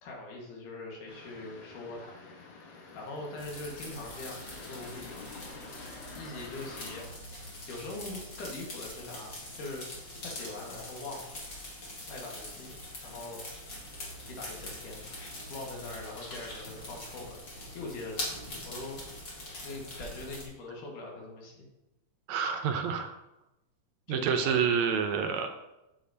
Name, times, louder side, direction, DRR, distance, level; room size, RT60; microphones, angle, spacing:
voice 1, 0.0-2.2 2.9-5.3 6.1-9.8 10.2-11.3 12.1-12.7 13.0-13.5 14.3-15.0 15.5-17.4 17.7-18.3 18.6-19.2 19.6-21.7 24.1-24.7, left 2 dB, 85° left, -1 dB, 3.2 m, -42 dB
sound 1, 1.1-7.0, left 3 dB, 70° left, 2.6 m, -48 dB
sound 2, 3.4-20.4, left 1 dB, 40° left, 2.3 m, -43 dB
voice 2, 22.3-23.1 24.1-25.5, right 7 dB, 80° right, 6 dB, 1.9 m, -28 dB
8.7 x 8.1 x 2.8 m, 0.93 s
omnidirectional pair, 3.5 m